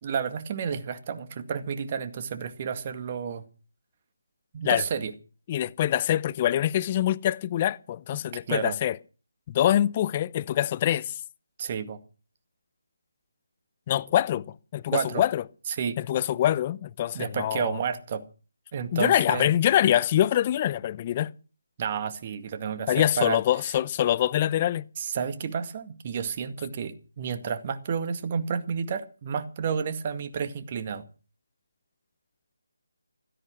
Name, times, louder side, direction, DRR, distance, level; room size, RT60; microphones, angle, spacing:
voice 1, 0.0-3.5 4.5-5.1 8.5-8.8 11.6-12.0 14.9-15.2 15.7-16.0 17.1-18.2 18.7-19.5 21.8-23.4 25.0-31.0, right 6 dB, 35° right, 2.0 m, -31 dB
voice 2, 5.5-9.0 9.5-11.1 13.9-15.4 16.0-17.8 18.9-21.3 22.9-24.9, left 12 dB, 25° left, 0.7 m, -24 dB
16.5 x 13.5 x 6.3 m
figure-of-eight pair, 155°, 0 cm